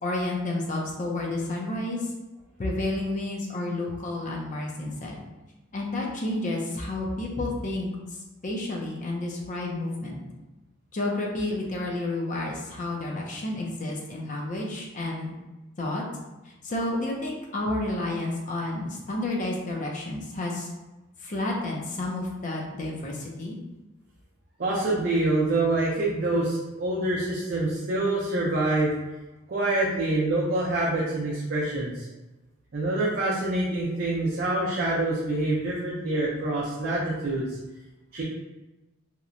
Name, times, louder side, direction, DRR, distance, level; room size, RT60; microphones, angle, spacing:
voice 1, 0.0-2.0 2.6-5.2 5.7-7.9 8.4-10.2 10.9-15.3 15.8-16.0 16.6-20.7 21.2-23.6, left 2 dB, 35° left, -2 dB, 0.5 m, -30 dB
voice 2, 24.6-28.9 29.5-32.1 32.7-37.4 38.1-38.2, right 2 dB, 50° right, -6 dB, 0.5 m, -26 dB
2.8 x 2.1 x 2.5 m, 1.1 s
head